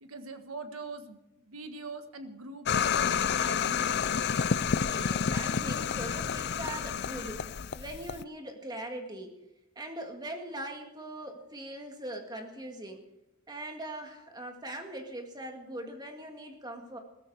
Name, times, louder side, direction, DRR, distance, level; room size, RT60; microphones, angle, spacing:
voice 1, 0.0-1.2 1.5-4.0, right 3 dB, 85° right, 8 dB, 1.6 m, -43 dB
sound 1, 2.7-8.2, left 7 dB, 50° left, 0.5 m, -29 dB
voice 2, 4.9-7.5 7.7-9.4 9.8-13.1 13.5-17.0, right 1 dB, 20° right, 4 dB, 2.0 m, -41 dB
16.0 x 14.0 x 4.8 m, 0.92 s
head